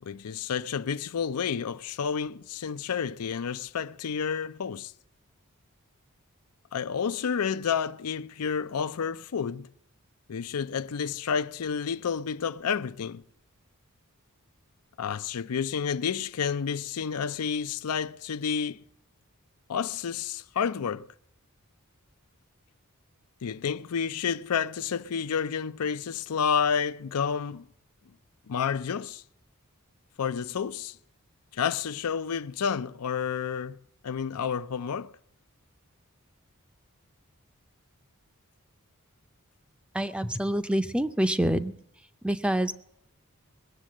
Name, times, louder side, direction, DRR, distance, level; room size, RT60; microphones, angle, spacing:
voice 1, 0.0-4.9 6.7-9.7 10.3-13.2 15.0-18.8 19.7-21.1 23.4-27.7 28.5-29.2 30.2-31.0 31.5-33.8 34.0-35.1, left 7 dB, 90° left, 0.5 m, -30 dB
voice 2, 39.9-41.7 42.2-42.7, right 1 dB, 5° right, 0.5 m, -26 dB
20.5 x 7.3 x 7.6 m
head